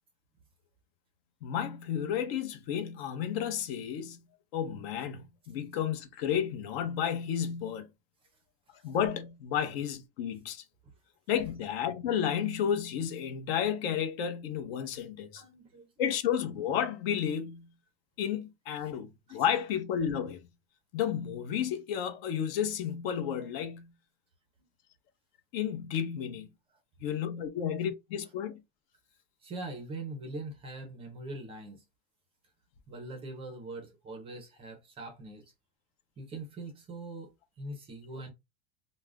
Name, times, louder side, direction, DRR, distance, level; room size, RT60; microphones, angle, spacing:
voice 1, 1.4-4.2 4.5-7.9 8.8-10.6 11.3-15.4 16.0-17.7 18.2-20.4 20.9-23.9 25.5-26.5 27.0-28.6, left 9 dB, 65° left, 0.6 m, -32 dB
voice 2, 15.3-15.9 19.3-19.4 29.4-31.8 32.9-35.4 36.2-37.3 37.6-38.3, right 2 dB, 15° right, 0.4 m, -42 dB
2.3 x 2.0 x 3.3 m
supercardioid pair, 165°, 33 cm